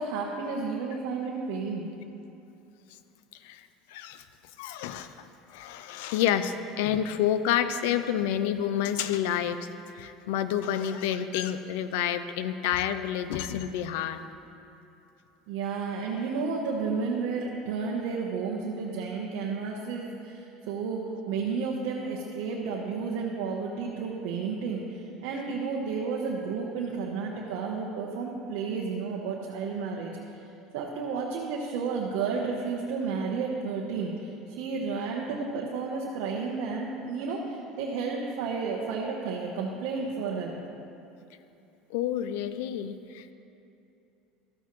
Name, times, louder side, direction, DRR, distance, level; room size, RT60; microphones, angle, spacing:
voice 1, 0.0-1.9 15.5-30.4 30.7-40.6, right 5 dB, 75° right, -2 dB, 0.9 m, -32 dB
voice 2, 3.4-4.2 4.6-9.7 9.9-14.2 41.9-43.3, left 10 dB, 80° left, 11 dB, 0.4 m, -29 dB
12.5 x 8.2 x 3.1 m, 2.8 s
supercardioid pair, 120°, 0 cm